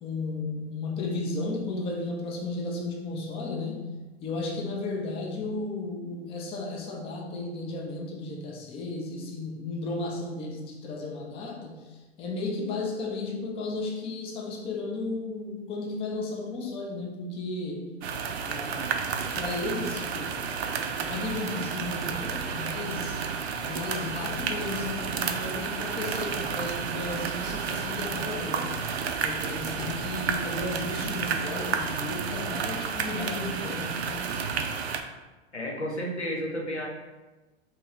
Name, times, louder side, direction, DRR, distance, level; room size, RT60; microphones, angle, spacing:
voice 1, 0.0-3.9 4.2-17.9 18.4-19.1 19.4-20.4 20.9-23.2 23.6-28.8 29.2-34.3, left 2 dB, 15° left, 0 dB, 0.5 m, -34 dB
sound 1, 18.0-35.0, right 6 dB, 70° right, 0.5 m, -31 dB
voice 2, 35.5-36.9, equal, 90° left, -2 dB, 0.9 m, -32 dB
3.0 x 3.0 x 3.6 m, 1.2 s
figure-of-eight pair, 100°, 33 cm